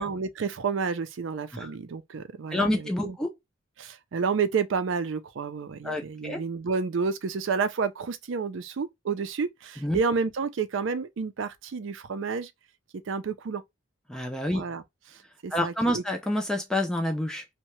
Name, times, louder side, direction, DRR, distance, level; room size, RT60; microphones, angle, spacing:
voice 1, 0.0-3.2 3.8-12.5 13.1-13.6 14.5-14.8 15.4-16.0, right 5 dB, 75° right, 0.4 m, -30 dB
voice 2, 2.5-3.3 5.8-6.4 9.8-10.0 14.1-14.6 15.5-17.4, left 1 dB, 5° left, 0.3 m, -28 dB
2.7 x 2.1 x 3.0 m
head